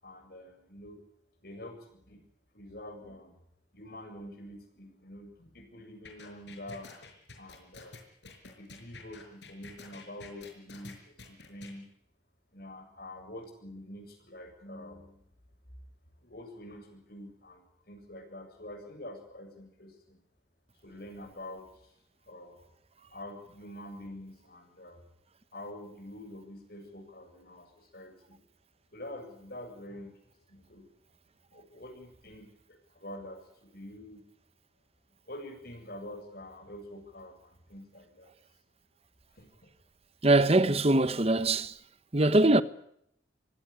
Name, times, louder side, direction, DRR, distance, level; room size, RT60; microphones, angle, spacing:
voice 1, 0.0-1.0 1.4-2.2 2.5-3.4 3.7-6.9 7.4-8.0 8.6-11.9 12.5-15.2 16.2-20.2 20.8-21.7 22.3-22.6 23.1-25.0 25.5-28.4 28.9-30.1 30.5-30.9 31.5-34.2 35.3-38.3 39.4-39.7, left 1 dB, 55° left, 7.3 m, -46 dB
sound 1, 6.0-11.7, left 3 dB, 70° left, 6.1 m, -49 dB
voice 2, 40.2-41.8 42.1-42.6, right 2 dB, 35° right, 1.0 m, -22 dB
24.0 x 17.5 x 8.6 m
head